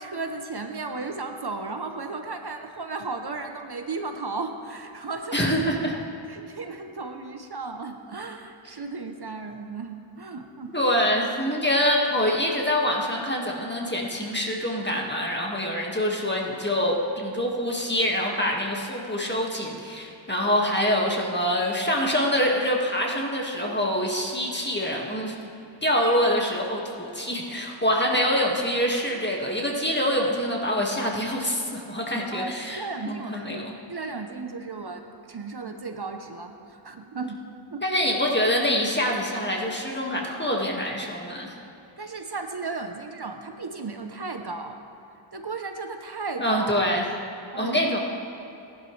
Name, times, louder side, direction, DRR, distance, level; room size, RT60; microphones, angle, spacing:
voice 1, 0.0-5.6 6.3-10.8 32.3-37.4 37.7-37.8 42.0-44.8 45.3-47.0 47.5-47.9, right 3 dB, 55° right, 5 dB, 0.9 m, -35 dB
voice 2, 5.3-5.9 10.7-25.4 25.8-33.7 37.8-41.5 46.4-47.0 47.6-48.0, equal, 20° left, -1 dB, 1.9 m, -25 dB
18.5 x 11.0 x 3.3 m, 2.8 s
wide cardioid pair, 50°, 48 cm